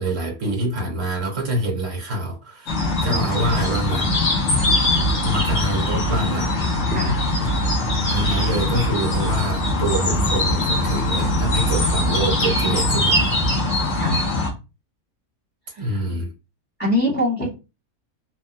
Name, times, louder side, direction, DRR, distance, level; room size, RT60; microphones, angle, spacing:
voice 1, 0.0-4.1 5.2-6.5 7.4-7.5 8.1-13.4 15.8-16.3, right 1 dB, 60° right, 1.2 m, -26 dB
sound 1, 2.7-14.5, left 1 dB, 55° left, 1.2 m, -21 dB
voice 2, 6.9-7.2 13.9-14.2 15.7-16.0 16.8-17.5, left 1 dB, 10° left, 0.8 m, -23 dB
3.2 x 2.2 x 2.6 m
omnidirectional pair, 1.5 m